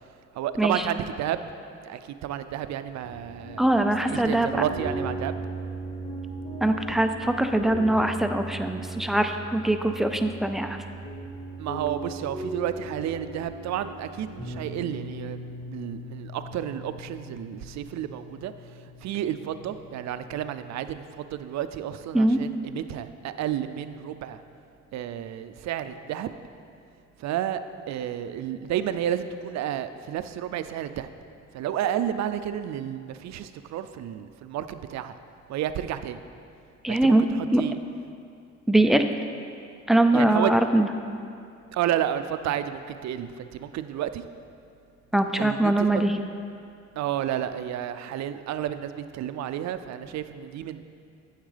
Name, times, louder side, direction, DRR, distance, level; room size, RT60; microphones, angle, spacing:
voice 1, 0.3-1.4 1.8-3.6 4.0-5.4 11.6-18.5 19.0-24.4 24.9-26.3 27.2-27.6 27.9-31.1 31.5-35.2 35.5-36.2 36.9-37.8 40.1-40.5 41.7-44.2 45.4-46.0 47.0-50.9, right 11 dB, 65° right, 11 dB, 0.5 m, -31 dB
sound 1, 3.0-20.8, right 2 dB, 50° left, 1.9 m, -38 dB
voice 2, 3.6-4.6 6.6-10.8 22.1-22.4 36.8-37.2 37.5-37.6 38.7-39.0 39.9-40.9 45.1-46.1, right 1 dB, ahead, 6 dB, 0.4 m, -22 dB
9.0 x 7.2 x 3.3 m, 2.4 s
cardioid pair, 90°, 30 cm